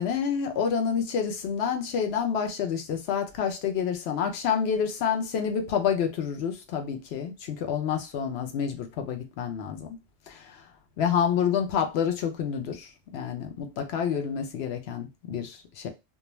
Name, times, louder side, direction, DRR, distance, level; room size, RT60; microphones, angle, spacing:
voice 1, 0.0-10.0 10.3-10.7 11.0-15.9, left 7 dB, 75° left, 0.9 m, -28 dB
2.3 x 2.2 x 3.0 m
omnidirectional pair, 1.1 m